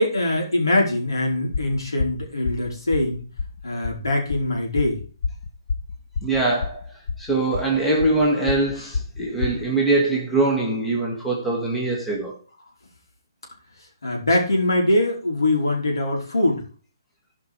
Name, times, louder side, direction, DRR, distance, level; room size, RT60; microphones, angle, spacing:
voice 1, 0.0-3.2 3.6-5.0 14.0-16.6, left 1 dB, 70° left, 3.6 m, -22 dB
sound 1, 1.5-9.7, left 4 dB, 50° left, 1.3 m, -30 dB
voice 2, 6.2-6.8 7.2-12.3, right 2 dB, 5° left, 2.0 m, -22 dB
14.0 x 5.3 x 4.7 m
figure-of-eight pair, 135°, 2 cm